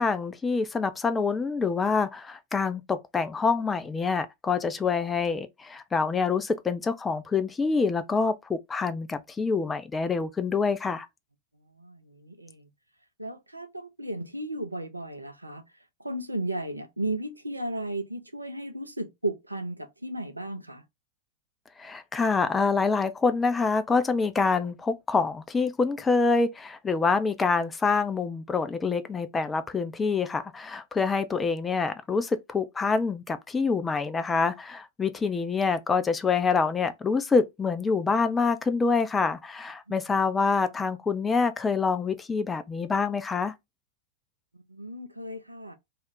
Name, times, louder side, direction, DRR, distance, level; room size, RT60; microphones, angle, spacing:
voice 1, 0.0-11.1 21.8-43.5, left 4 dB, 15° left, 0.4 m, -26 dB
voice 2, 11.8-12.7 13.2-15.6 16.0-20.8 44.5-45.7, right 1 dB, 85° right, 0.4 m, -35 dB
2.4 x 2.1 x 3.6 m
figure-of-eight pair, 90°, 0 cm